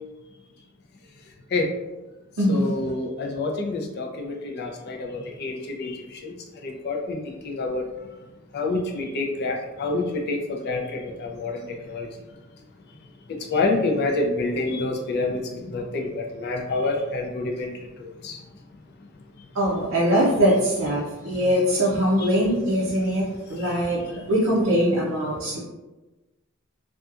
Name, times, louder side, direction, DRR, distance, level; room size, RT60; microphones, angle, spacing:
voice 1, 2.5-6.3 6.6-7.9 8.5-12.1 13.3-17.7 18.0-18.4 22.2-22.3 23.6-23.8, left 2 dB, 50° left, 1 dB, 0.4 m, -28 dB
voice 2, 19.5-23.2 23.5-24.0 24.3-25.6, equal, 65° right, -4 dB, 0.5 m, -22 dB
2.7 x 2.3 x 2.4 m, 1.1 s
head